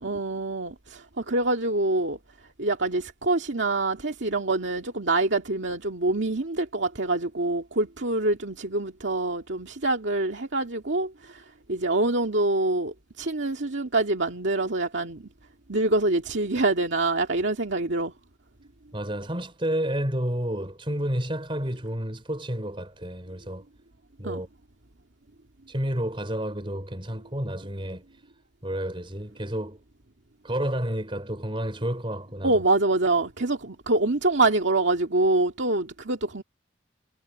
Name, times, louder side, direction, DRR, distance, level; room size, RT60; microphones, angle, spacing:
voice 1, 0.0-2.2 2.6-11.4 11.7-15.2 15.7-18.1 24.2-24.4 32.4-36.4, right 2 dB, 70° right, 2.1 m, -25 dB
voice 2, 18.9-23.6 24.2-24.5 25.7-28.0 28.6-29.8 30.4-32.6, equal, 25° right, 4.4 m, -30 dB
head